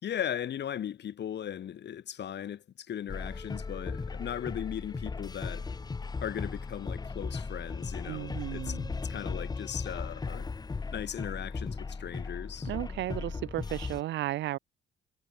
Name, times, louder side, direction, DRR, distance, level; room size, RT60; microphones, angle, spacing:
voice 1, 0.0-5.7 6.2-8.8 9.1-10.5 10.9-12.7, left 10 dB, 60° left, 1.7 m, -37 dB
sound 1, 3.1-14.0, left 4 dB, 20° left, 0.6 m, -37 dB
voice 2, 8.1-9.0 12.7-14.6, right 15 dB, 65° right, 0.4 m, -34 dB
cardioid pair, 90°, 20 cm